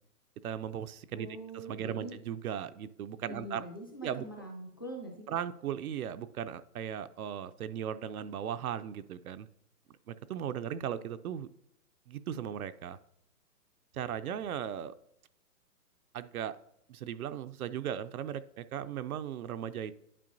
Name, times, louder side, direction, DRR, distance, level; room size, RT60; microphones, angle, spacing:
voice 1, 0.4-1.3 1.7-3.6 4.0-4.3 5.3-9.5 10.1-11.5 12.1-13.0 13.9-14.9 16.1-16.6 16.9-19.9, right 9 dB, 70° right, 11 dB, 0.5 m, -37 dB
voice 2, 1.1-2.2 3.2-5.4, right 1 dB, 15° left, -1 dB, 0.4 m, -43 dB
11.0 x 4.5 x 2.6 m, 0.76 s
hypercardioid pair, 150°, 46 cm